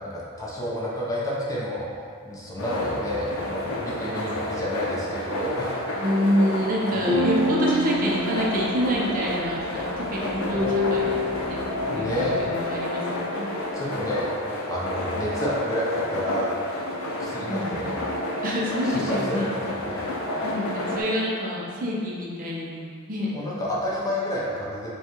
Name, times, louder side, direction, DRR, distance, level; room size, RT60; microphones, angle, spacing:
voice 1, 0.0-5.8 6.9-7.2 11.9-12.3 13.7-14.3 14.7-16.7 17.2-17.9 18.8-20.1 23.3-24.9, left 1 dB, 15° left, -7 dB, 0.7 m, -30 dB
sound 1, 2.6-21.0, left 1 dB, 75° left, 0.6 m, -30 dB
sound 2, 5.9-6.4 7.0-9.8 10.5-13.7, left 1 dB, 10° right, 0.9 m, -28 dB
voice 2, 6.0-11.6 11.9-13.5 17.3-17.7 18.4-19.5 19.9-20.1 20.4-23.5, equal, 40° right, -4 dB, 0.6 m, -27 dB
sound 3, 7.0-12.5, equal, 40° left, 1.5 m, -47 dB
5.4 x 2.3 x 3.0 m, 2.2 s
head